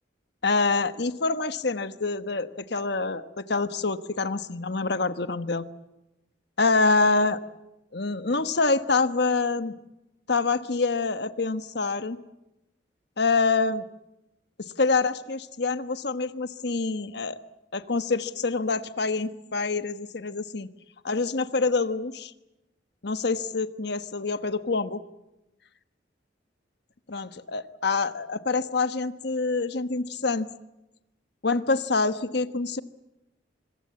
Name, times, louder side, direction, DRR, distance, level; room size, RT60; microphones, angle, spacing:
voice 1, 0.4-5.6 6.6-7.4 7.9-9.8 10.3-12.2 13.2-13.8 14.6-17.4 17.7-20.7 21.0-22.3 23.0-25.0 27.1-30.5 31.4-32.8, left 3 dB, 65° left, 11 dB, 1.2 m, -26 dB
25.5 x 23.0 x 8.6 m, 0.93 s
head